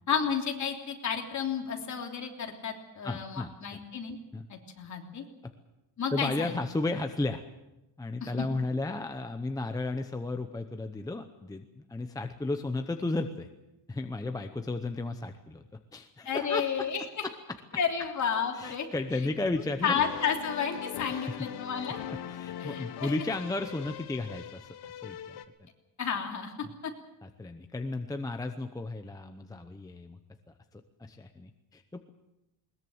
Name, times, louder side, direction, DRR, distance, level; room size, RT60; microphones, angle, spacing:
voice 1, 0.1-4.2 4.5-5.2 6.0-6.6 8.2-8.5 16.2-17.3 17.7-18.9 19.8-22.0 22.6-23.1 26.0-26.5 26.8-26.9, left 7 dB, 40° left, 2 dB, 3.2 m, -32 dB
voice 2, 3.0-3.8 4.3-4.4 6.1-7.4 8.0-13.5 13.9-15.7 15.9-17.3 18.5-20.0 21.1-21.5 21.9-25.7 27.2-30.2 30.7-32.1, left 2 dB, 10° left, 6 dB, 0.8 m, -34 dB
sound 1, 19.8-25.4, left 11 dB, 60° left, 1.5 m, -41 dB
21.0 x 20.5 x 7.9 m, 0.98 s
cardioid pair, 175°, 43 cm